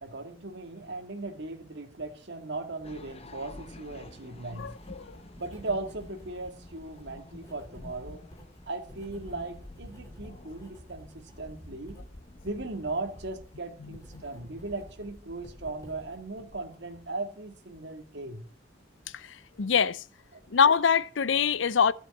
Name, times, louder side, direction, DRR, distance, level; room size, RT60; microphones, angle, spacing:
voice 1, 0.0-4.7 5.4-8.2 8.7-12.0 12.4-18.4 20.3-20.4, right 2 dB, 65° right, 2.1 m, -38 dB
sound 1, 2.8-20.8, left 1 dB, 35° left, 1.0 m, -51 dB
Writing, 4.4-16.4, equal, 20° left, 3.1 m, -53 dB
voice 2, 4.6-5.1 13.8-13.9 19.1-20.0 20.5-21.9, left 6 dB, 80° left, 0.6 m, -24 dB
13.5 x 7.6 x 7.2 m
head